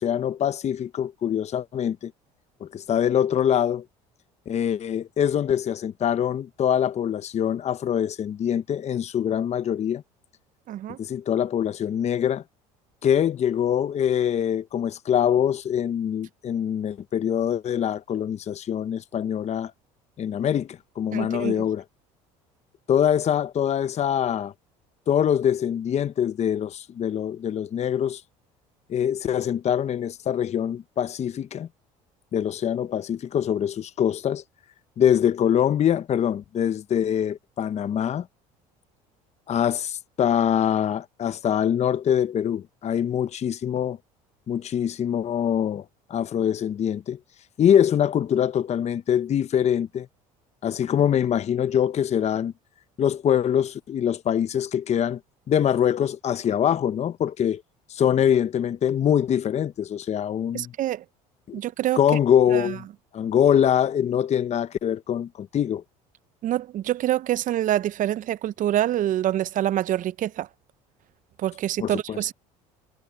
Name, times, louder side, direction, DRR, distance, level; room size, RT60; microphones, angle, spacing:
voice 1, 0.0-2.1 2.6-3.8 4.5-10.0 11.0-12.4 13.0-19.7 20.2-21.8 22.9-24.5 25.1-28.2 28.9-31.7 32.3-34.4 35.0-38.3 39.5-44.0 44.5-45.8 46.1-47.2 47.6-50.1 50.6-52.5 53.0-55.2 55.5-57.6 57.9-60.7 61.5-61.6 62.0-62.8 63.1-65.8 71.8-72.2, left 9 dB, 40° left, 0.9 m, -24 dB
voice 2, 10.7-11.0 21.1-21.6 60.5-61.0 61.5-62.0 62.5-62.8 66.4-70.5 71.4-72.3, right 12 dB, 50° right, 0.6 m, -26 dB
supercardioid pair, 80°, 17 cm